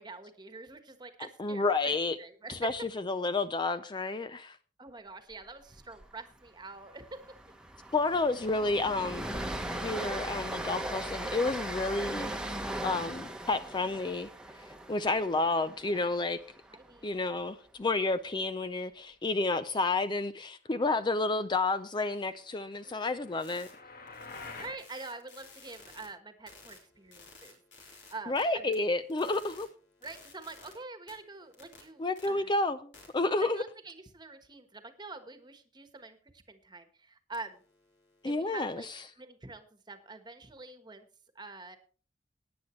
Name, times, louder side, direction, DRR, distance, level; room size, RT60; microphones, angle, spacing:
voice 1, 0.0-2.9 4.8-7.2 16.7-17.3 22.8-23.7 24.6-28.6 30.0-32.5 33.4-37.6 38.2-38.9 39.2-41.1 41.3-41.8, right 3 dB, 25° right, 1.3 m, -46 dB
voice 2, 1.4-2.2 2.5-4.6 7.9-9.3 9.8-12.3 12.8-14.3 14.9-16.4 17.0-23.7 28.3-29.7 32.0-33.6 38.2-38.9, left 3 dB, 25° left, 0.5 m, -30 dB
Train, 5.8-6.0 6.3-6.5 6.8-17.0, right 1 dB, 5° right, 1.1 m, -39 dB
sound 1, 21.7-26.1 26.5-28.4 28.7-30.7 31.1-32.3 32.9-33.1 37.3-38.6, left 4 dB, 75° left, 4.1 m, -57 dB
sound 2, 22.6-24.9, left 3 dB, 55° left, 1.4 m, -47 dB
17.5 x 9.6 x 3.1 m
head